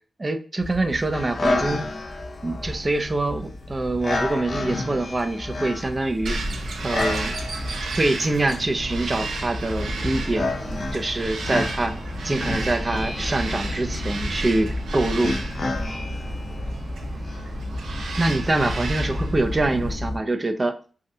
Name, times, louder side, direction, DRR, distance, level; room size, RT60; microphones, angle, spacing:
voice 1, 0.2-1.9 2.4-6.4 6.8-7.4 8.0-10.5 10.9-11.9 12.2-15.4 18.2-20.8, right 2 dB, 30° right, 7 dB, 0.5 m, -25 dB
sound 1, 0.6-20.2, left 1 dB, 15° left, 1.8 m, -33 dB
sound 2, 1.1-18.8, left 2 dB, 50° left, 0.6 m, -32 dB
Bird vocalization bird call bird song, 6.2-19.9, right 3 dB, 80° right, 0.7 m, -33 dB
5.2 x 2.4 x 2.7 m, 0.39 s
cardioid pair, 65°, 0 cm